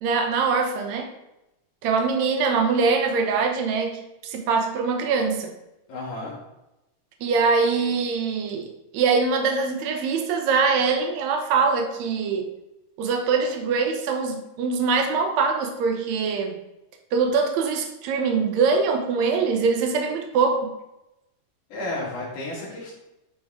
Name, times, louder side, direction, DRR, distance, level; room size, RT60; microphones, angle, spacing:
voice 1, 0.0-1.1 1.8-5.5 7.2-8.7 8.9-12.5 13.0-16.5 17.1-20.7, right 5 dB, 85° right, 4 dB, 1.5 m, -23 dB
voice 2, 5.9-6.4 21.7-22.9, left 2 dB, 60° left, -5 dB, 3.6 m, -32 dB
10.5 x 4.8 x 3.6 m, 0.91 s
omnidirectional pair, 4.4 m